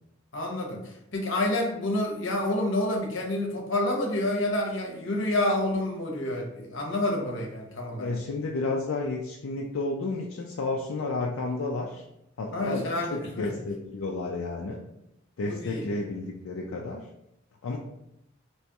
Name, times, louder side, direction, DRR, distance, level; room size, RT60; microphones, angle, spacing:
voice 1, 0.3-8.1 12.5-13.5 15.4-15.9, left 1 dB, 65° left, 0 dB, 0.8 m, -28 dB
voice 2, 8.0-12.0 12.4-14.8 15.4-17.0 17.6-17.8, left 3 dB, 85° left, -1 dB, 0.4 m, -31 dB
3.0 x 2.8 x 3.4 m, 0.81 s
head